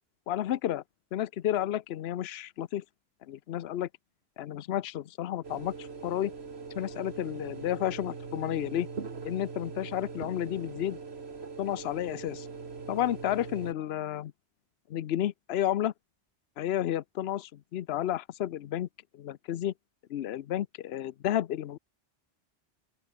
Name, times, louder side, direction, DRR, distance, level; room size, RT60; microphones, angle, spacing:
voice 1, 0.3-0.8 1.1-2.8 3.3-3.9 4.4-6.3 6.8-8.9 9.2-11.0 11.6-12.5 12.9-14.3 14.9-15.9 16.6-18.9 19.1-19.7 20.1-21.8, left 12 dB, 80° left, 0.9 m, -31 dB
sound 1, 5.4-13.7, right 4 dB, 80° right, 2.1 m, -41 dB
open air
omnidirectional pair, 1.1 m